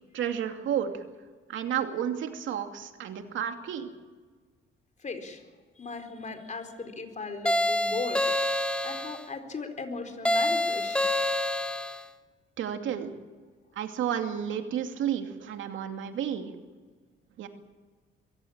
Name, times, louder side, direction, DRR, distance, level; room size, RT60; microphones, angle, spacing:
voice 1, 0.1-1.0 1.5-3.9 12.6-13.1 13.7-16.5 17.4-17.5, right 9 dB, 80° right, 5 dB, 2.6 m, -31 dB
voice 2, 5.0-5.4 5.8-8.2 8.8-11.1, left 4 dB, 40° left, 6 dB, 4.4 m, -37 dB
sound 1, 7.5-9.2 10.3-12.0, left 1 dB, 5° left, 1.2 m, -27 dB
23.5 x 16.5 x 8.8 m, 1.4 s
cardioid pair, 90°, 20 cm